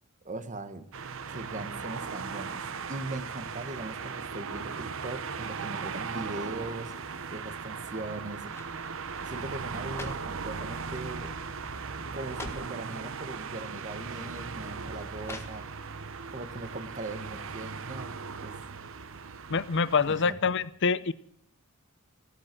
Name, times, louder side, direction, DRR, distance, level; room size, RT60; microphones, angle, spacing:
voice 1, 0.2-0.8 1.3-2.6 2.9-6.9 7.3-8.5 9.2-11.3 11.9-15.7 16.3-18.5 20.1-20.5, right 2 dB, 35° right, 10 dB, 1.3 m, -40 dB
sound 1, 0.9-20.3, right 5 dB, 65° right, 0.9 m, -38 dB
sound 2, 7.7-8.0 8.5-8.8 9.6-10.4 11.2-11.5 11.8-11.9 12.2-12.8 13.7-13.9 15.2-16.0 16.4-16.5, left 2 dB, 10° left, 1.6 m, -44 dB
voice 2, 19.5-21.1, left 5 dB, 55° left, 16 dB, 0.6 m, -26 dB
15.5 x 13.5 x 6.1 m, 0.67 s
head